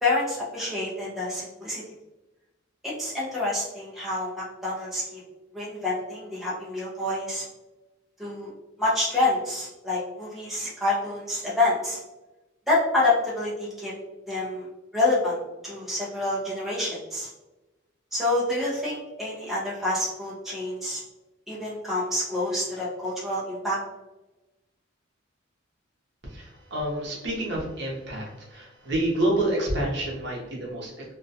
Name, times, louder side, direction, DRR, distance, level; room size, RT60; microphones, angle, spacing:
voice 1, 0.0-1.8 2.8-5.2 5.5-7.4 8.2-8.5 8.8-12.0 12.7-13.9 14.3-14.7 14.9-17.3 18.1-21.0 21.5-23.8, left 2 dB, ahead, -7 dB, 0.5 m, -27 dB
voice 2, 26.2-31.2, right 1 dB, 60° right, -3 dB, 0.7 m, -28 dB
2.3 x 2.2 x 2.6 m, 1.1 s
head